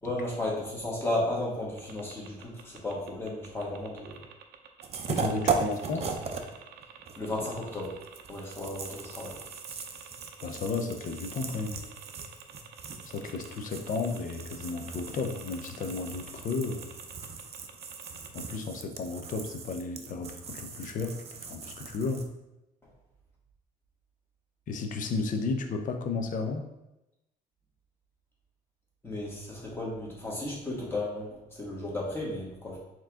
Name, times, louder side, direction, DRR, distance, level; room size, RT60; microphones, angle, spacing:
voice 1, 0.0-4.2 5.5-5.6 6.0-6.1 7.2-8.0 8.3-9.4 29.0-32.8, left 1 dB, 15° left, -5 dB, 1.6 m, -34 dB
sound 1, 1.8-18.5, right 8 dB, 85° right, 0.6 m, -50 dB
sound 2, 4.8-6.5 6.8-22.3, right 5 dB, 40° right, 0.5 m, -38 dB
voice 2, 5.1-6.1 10.4-11.8 13.0-16.9 18.3-22.3 24.7-26.6, left 4 dB, 50° left, 5 dB, 0.7 m, -33 dB
4.5 x 3.0 x 3.7 m, 0.94 s
cardioid pair, 110°, 17 cm